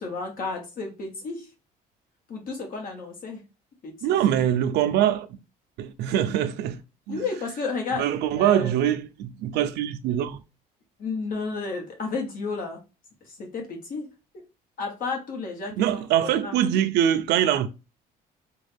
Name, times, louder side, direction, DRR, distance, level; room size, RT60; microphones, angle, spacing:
voice 1, 0.0-1.5 2.3-3.4 3.8-3.9 7.1-8.1 8.4-8.8 11.0-12.8 13.3-14.1 14.8-16.5, left 4 dB, 55° left, 1.4 m, -32 dB
voice 2, 4.0-5.3 5.8-6.8 7.1-7.2 7.9-10.4 15.8-17.7, right 10 dB, 80° right, 0.5 m, -23 dB
3.6 x 2.4 x 3.4 m
cardioid pair, 110°, 17 cm